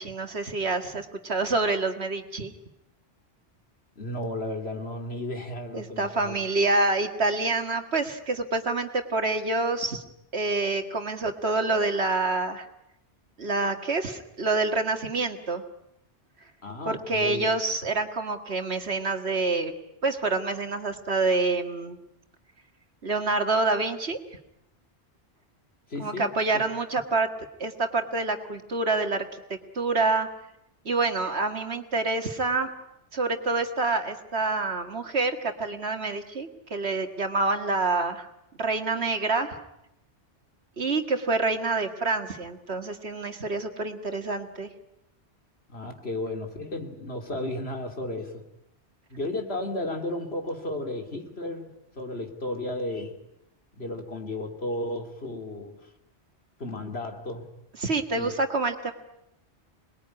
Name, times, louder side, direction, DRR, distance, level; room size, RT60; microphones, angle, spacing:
voice 1, 0.0-2.5 5.7-10.0 10.3-12.7 13.4-15.6 16.9-19.7 20.0-22.0 23.0-24.2 26.0-27.3 27.6-30.3 30.9-32.7 33.1-38.3 38.6-39.6 40.8-44.7 57.8-58.9, right 3 dB, 65° right, 6 dB, 2.2 m, -27 dB
voice 2, 4.0-6.3 16.6-17.5 25.9-26.6 45.7-48.4 49.1-53.1 53.8-55.8 56.6-57.5 58.1-58.4, left 1 dB, 65° left, 4 dB, 3.1 m, -34 dB
27.5 x 21.0 x 9.7 m, 0.85 s
omnidirectional pair, 1.2 m